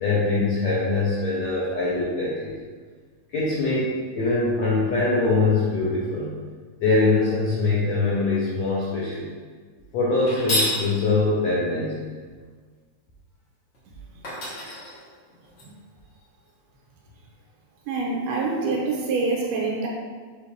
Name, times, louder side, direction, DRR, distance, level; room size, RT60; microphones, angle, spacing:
voice 1, 0.0-2.5 3.3-6.4 6.8-9.3 9.9-12.0, left 3 dB, 80° left, -7 dB, 1.5 m, -23 dB
sound 1, 10.3-10.8 13.7-13.8 14.2-15.6, left 1 dB, 50° left, 1.4 m, -28 dB
voice 2, 13.9-14.3 15.6-15.7 17.9-19.9, right 3 dB, 80° right, -2 dB, 2.8 m, -26 dB
6.8 x 5.0 x 2.8 m, 1.5 s
omnidirectional pair, 4.6 m